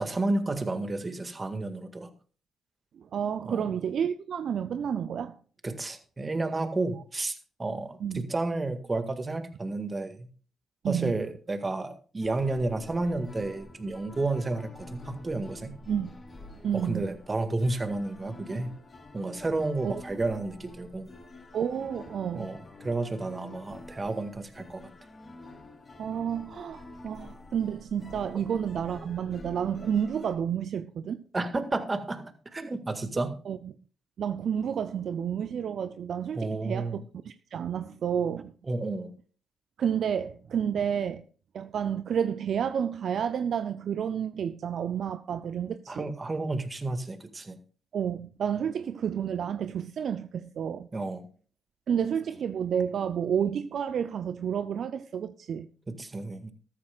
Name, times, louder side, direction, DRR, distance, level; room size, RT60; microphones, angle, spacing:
voice 1, 0.0-2.1 3.4-3.6 5.6-10.3 10.8-15.8 16.7-18.7 19.1-21.1 22.3-24.8 31.3-33.4 36.4-37.0 38.7-39.1 45.9-47.6 50.9-51.3 55.9-56.5, right 2 dB, 30° right, 1.9 m, -31 dB
voice 2, 3.0-5.4 8.0-8.3 10.8-11.1 15.9-16.1 16.6-17.1 19.8-20.0 21.5-22.5 26.0-31.2 33.5-33.7 34.2-38.5 39.8-41.2 41.5-46.1 47.9-50.9 51.9-55.7, right 8 dB, 65° right, 0.5 m, -30 dB
sound 1, 12.2-30.3, left 2 dB, 40° left, 3.4 m, -48 dB
13.5 x 13.5 x 2.4 m
hypercardioid pair, 40°, 0 cm